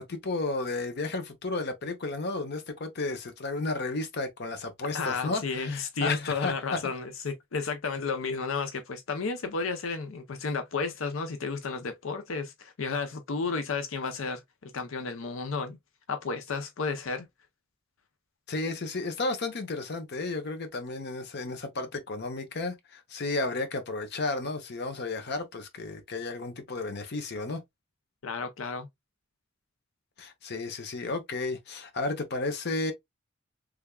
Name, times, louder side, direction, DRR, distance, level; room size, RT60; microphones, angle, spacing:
voice 1, 0.0-6.8 18.5-27.6 30.2-32.9, left 3 dB, 55° left, 0.8 m, -33 dB
voice 2, 4.9-15.8 16.1-17.3 28.2-28.9, left 4 dB, 90° left, 0.6 m, -32 dB
3.4 x 3.4 x 2.2 m
head